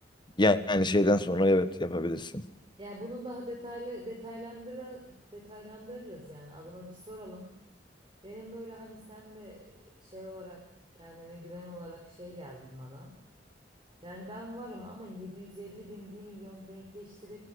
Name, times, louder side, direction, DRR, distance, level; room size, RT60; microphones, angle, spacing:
voice 1, 0.4-2.4, left 1 dB, 25° left, 11 dB, 1.4 m, -25 dB
voice 2, 2.8-7.5 8.2-10.6 10.9-13.1 14.0-17.4, equal, 30° right, 0 dB, 5.0 m, -44 dB
22.5 x 14.5 x 8.0 m, 0.83 s
head